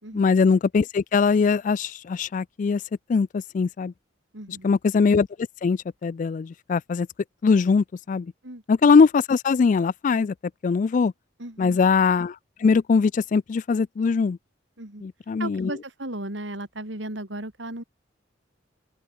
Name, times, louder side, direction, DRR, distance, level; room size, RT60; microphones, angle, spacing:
voice 1, 0.1-2.8 3.1-3.9 4.6-5.3 5.6-7.1 7.4-8.3 8.7-10.3 10.6-11.1 11.6-14.4 15.0-15.7, left 5 dB, 40° left, 0.3 m, -21 dB
voice 2, 4.3-4.7 8.4-8.6 11.4-11.8 14.8-15.0 15.4-17.8, right 1 dB, 75° right, 4.1 m, -35 dB
open air
head